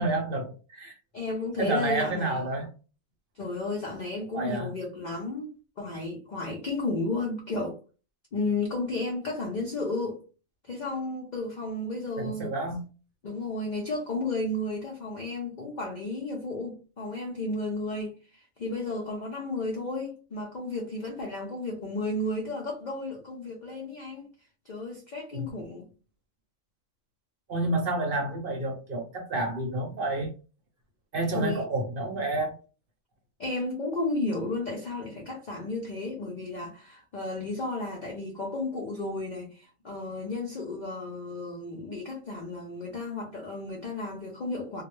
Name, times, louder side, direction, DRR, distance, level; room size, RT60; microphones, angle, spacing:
voice 1, 0.0-1.0 1.6-2.7 4.3-4.7 12.2-12.8 25.3-25.5 27.5-30.3 31.1-32.5, right 2 dB, 50° right, 0.8 m, -29 dB
voice 2, 1.1-2.4 3.4-5.5 5.8-7.8 8.3-10.2 10.6-12.5 13.2-24.3 24.7-25.9 31.3-31.7 33.4-44.8, left 2 dB, 60° left, 0.4 m, -33 dB
2.3 x 2.0 x 3.0 m
omnidirectional pair, 1.4 m